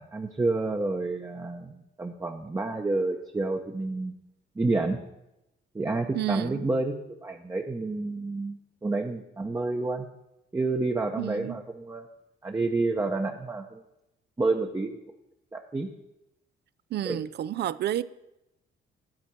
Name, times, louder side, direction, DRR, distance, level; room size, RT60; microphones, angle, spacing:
voice 1, 0.0-4.1 4.6-5.0 5.7-6.9 7.2-10.1 10.5-12.0 12.4-13.8 14.4-15.0 15.5-15.9 17.0-17.2, right 3 dB, 15° right, 0.8 m, -29 dB
voice 2, 6.1-6.6 11.2-11.6 16.9-18.0, right 12 dB, 55° right, 0.4 m, -30 dB
11.5 x 4.4 x 7.4 m
cardioid pair, 90°, 20 cm